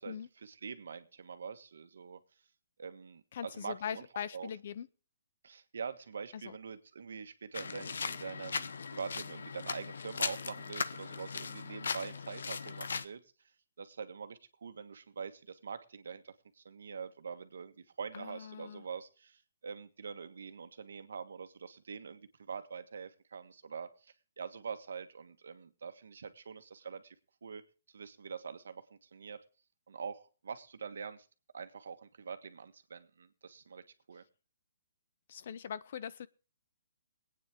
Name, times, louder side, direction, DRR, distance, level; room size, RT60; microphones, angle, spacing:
voice 1, 0.0-2.2 2.8-4.0 4.3-4.5 5.4-13.2 13.8-27.1 27.4-27.6 27.9-29.4 29.9-31.3 31.5-34.2, right 6 dB, 75° right, 1.5 m, -44 dB
voice 2, 3.3-4.9 6.3-6.6 18.1-18.8 35.3-36.3, left 8 dB, 45° left, 0.6 m, -41 dB
sound 1, 7.5-13.0, left 5 dB, 80° left, 0.8 m, -38 dB
22.0 x 9.2 x 3.6 m
hypercardioid pair, 170°, 0 cm